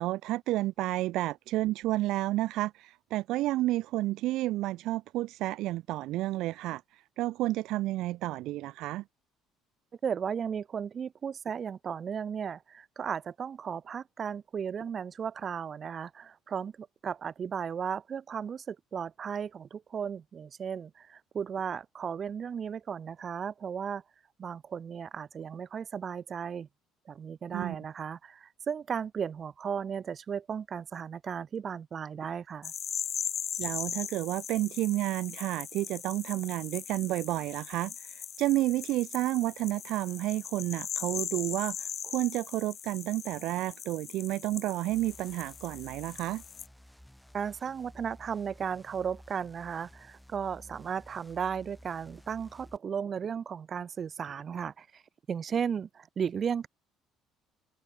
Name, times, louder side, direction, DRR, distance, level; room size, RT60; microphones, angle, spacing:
voice 1, 0.0-9.0 27.5-27.8 33.6-46.4, right 16 dB, 70° right, 0.4 m, -31 dB
voice 2, 10.0-24.0 24.4-26.7 27.1-32.7 47.3-55.0 55.3-56.7, right 7 dB, 35° right, 0.9 m, -35 dB
sound 1, 32.6-46.7, left 8 dB, 40° left, 1.4 m, -39 dB
sound 2, 44.9-52.8, equal, ahead, 3.0 m, -54 dB
open air
cardioid pair, 130°, 0 cm